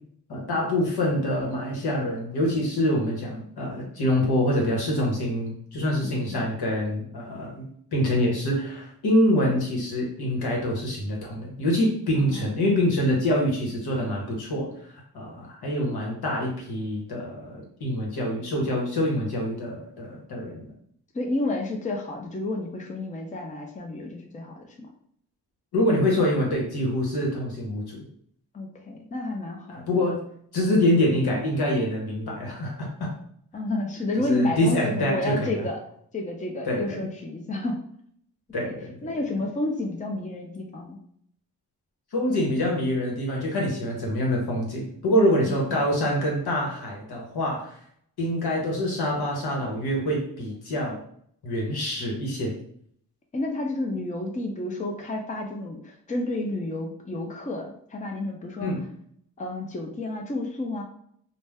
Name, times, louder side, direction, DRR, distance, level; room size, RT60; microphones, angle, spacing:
voice 1, 0.3-7.7 7.9-14.7 15.1-20.7 25.7-28.0 29.7-30.2 30.5-33.1 34.3-35.6 36.7-37.0 38.5-39.1 42.1-47.7 48.2-51.0 51.4-52.5 58.6-58.8, left 1 dB, 70° left, -2 dB, 1.2 m, -25 dB
voice 2, 6.0-6.4 12.1-12.4 21.1-24.9 28.5-30.1 33.5-35.8 36.1-37.8 38.6-38.7 39.0-41.0 45.4-45.8 53.3-58.7 59.4-60.8, left 2 dB, 20° left, 2 dB, 0.6 m, -30 dB
2.6 x 2.1 x 3.4 m, 0.66 s
cardioid pair, 60°, 39 cm